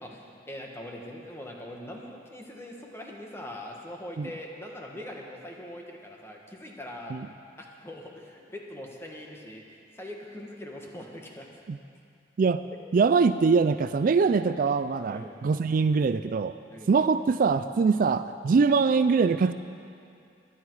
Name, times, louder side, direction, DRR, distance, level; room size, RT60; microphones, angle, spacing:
voice 1, 0.0-7.1 7.6-9.6 10.0-11.5 12.9-13.0 15.1-15.4 16.7-16.9, left 1 dB, 15° left, 0 dB, 1.6 m, -42 dB
voice 2, 12.9-16.5 16.9-19.5, right 5 dB, 50° right, 12 dB, 0.3 m, -23 dB
22.0 x 10.0 x 4.8 m, 2.4 s
head